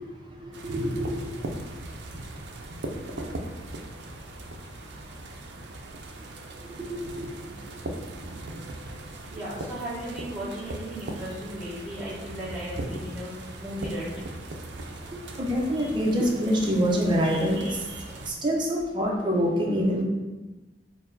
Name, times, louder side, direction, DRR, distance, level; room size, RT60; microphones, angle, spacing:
voice 1, 0.4-1.3 7.0-7.3 15.4-20.0, equal, 25° right, -2 dB, 0.7 m, -26 dB
sound 1, 0.5-18.3, right 2 dB, 70° right, 0.5 m, -39 dB
voice 2, 9.3-14.3, equal, 5° right, -11 dB, 1.4 m, -36 dB
4.5 x 2.1 x 3.9 m, 1.1 s
head